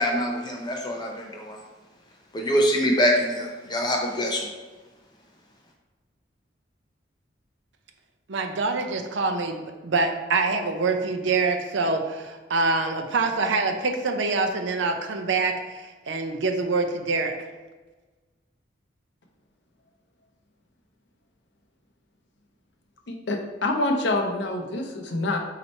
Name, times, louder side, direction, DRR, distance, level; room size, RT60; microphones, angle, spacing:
voice 1, 0.0-1.6 2.3-4.5, equal, 20° left, 1 dB, 0.5 m, -24 dB
voice 2, 8.3-17.4, right 3 dB, 75° right, 5 dB, 0.5 m, -25 dB
voice 3, 23.1-25.4, left 2 dB, 65° left, 3 dB, 0.6 m, -26 dB
4.1 x 2.8 x 4.3 m, 1.3 s
head